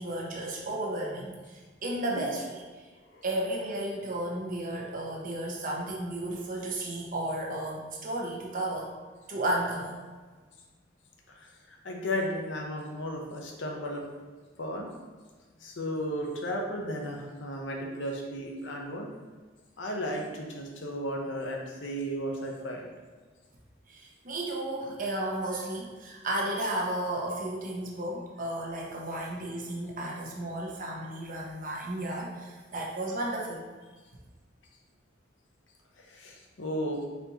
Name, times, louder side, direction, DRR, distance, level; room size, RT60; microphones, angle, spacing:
voice 1, 0.0-2.9 3.2-8.9 9.3-10.0 23.9-33.6, right 1 dB, 45° right, -2 dB, 0.8 m, -33 dB
voice 2, 11.4-14.0 14.6-14.9 15.6-19.1 19.8-22.9 36.1-37.0, equal, 70° left, 1 dB, 0.7 m, -34 dB
4.2 x 4.0 x 2.9 m, 1.4 s
head